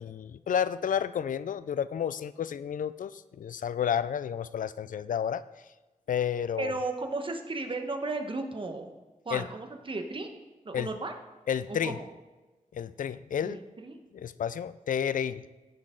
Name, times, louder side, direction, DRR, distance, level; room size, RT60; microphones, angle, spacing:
voice 1, 0.0-5.4 6.1-6.7 9.3-9.4 10.7-10.9 11.5-12.0 12.7-13.6 14.1-15.4, left 8 dB, 75° left, 16 dB, 0.4 m, -31 dB
voice 2, 6.6-8.9 9.2-10.3 10.6-11.1 11.7-12.1 13.4-14.0, right 3 dB, 40° right, 5 dB, 1.2 m, -34 dB
16.5 x 6.0 x 3.8 m, 1.2 s
wide cardioid pair, 95°, 14 cm